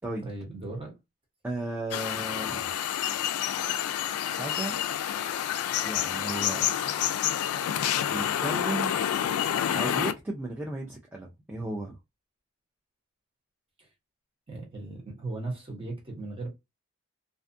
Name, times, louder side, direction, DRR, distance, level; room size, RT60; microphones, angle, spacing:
voice 1, 0.2-0.9 14.5-16.5, right 2 dB, 25° right, 0.9 m, -37 dB
voice 2, 1.4-2.7 4.2-4.8 5.8-6.7 8.0-9.1 9.7-11.9, right 2 dB, 10° right, 0.4 m, -35 dB
sound 1, 1.9-10.1, left 10 dB, 80° left, 0.3 m, -28 dB
2.5 x 2.3 x 2.5 m
head